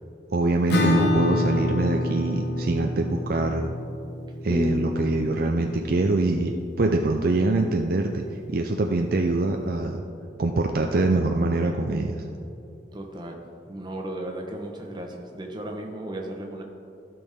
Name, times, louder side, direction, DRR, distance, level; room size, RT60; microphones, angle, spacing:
voice 1, 0.3-3.7 4.4-10.0 10.4-12.3, right 2 dB, 50° right, 3 dB, 0.5 m, -24 dB
Acoustic guitar / Strum, 0.7-6.1, left 1 dB, 65° left, 1.1 m, -27 dB
sound 1, 4.5-7.5, left 2 dB, 20° left, 0.9 m, -33 dB
voice 2, 12.9-16.6, right 1 dB, 25° right, 1 dB, 1.0 m, -35 dB
15.0 x 6.1 x 3.6 m, 2.7 s
head